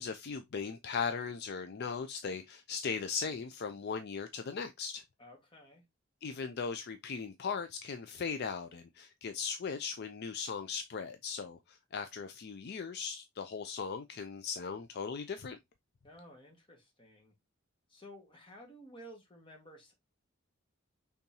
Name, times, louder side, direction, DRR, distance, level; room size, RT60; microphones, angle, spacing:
voice 1, 0.0-5.0 6.2-15.6, left 5 dB, 55° left, 0.4 m, -38 dB
voice 2, 5.2-5.8 16.0-17.3 17.9-19.9, equal, 25° left, 1.5 m, -54 dB
5.3 x 3.5 x 2.7 m
head